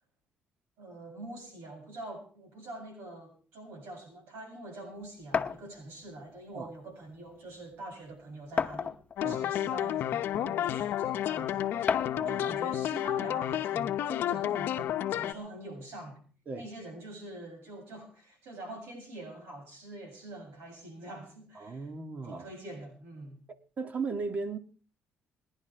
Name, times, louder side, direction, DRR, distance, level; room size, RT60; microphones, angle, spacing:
voice 1, 0.8-11.7 12.3-16.2 16.6-21.9 22.2-23.4, right 1 dB, 80° right, 7.3 m, -45 dB
sound 1, 5.3-5.6 6.8-6.9 7.3-7.4 8.6-9.2 10.1-10.2 11.9-12.3, left 6 dB, 35° left, 0.9 m, -30 dB
sound 2, 9.2-15.3, left 12 dB, 70° left, 0.8 m, -31 dB
voice 2, 21.6-22.5 23.8-24.6, right 4 dB, 45° right, 1.8 m, -36 dB
29.5 x 11.0 x 3.4 m
supercardioid pair, 80°, 4 cm